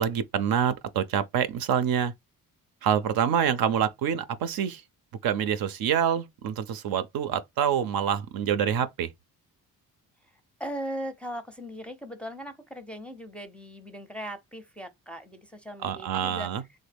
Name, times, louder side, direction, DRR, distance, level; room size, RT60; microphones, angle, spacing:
voice 1, 0.0-2.1 2.8-4.8 5.2-9.1 15.8-16.6, right 8 dB, 70° right, 0.6 m, -26 dB
voice 2, 10.6-16.5, equal, 5° left, 0.5 m, -38 dB
3.1 x 2.1 x 3.3 m
cardioid pair, 90°, 37 cm